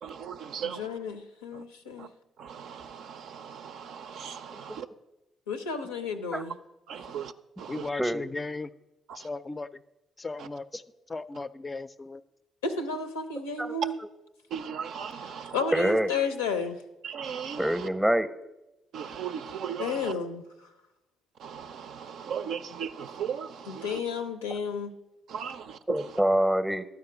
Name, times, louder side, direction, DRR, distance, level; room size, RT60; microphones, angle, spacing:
voice 1, 0.0-0.9 1.5-1.6 2.0-2.1 2.4-4.9 6.9-7.9 9.1-9.3 10.4-10.5 14.5-15.8 17.0-17.9 18.9-20.1 21.4-24.0 25.3-26.2, right 7 dB, 65° right, 0.4 m, -38 dB
voice 2, 0.8-2.1 5.5-6.5 12.6-13.9 15.5-16.8 19.8-20.4 23.8-24.9, left 4 dB, 85° left, 0.6 m, -32 dB
voice 3, 7.7-8.7 9.2-9.7 10.2-10.8 11.1-12.2, left 3 dB, 30° left, 0.4 m, -36 dB
voice 4, 15.7-16.1 17.6-18.3 25.9-26.9, right 1 dB, 5° right, 0.6 m, -25 dB
12.0 x 4.8 x 6.0 m
hypercardioid pair, 45°, 0 cm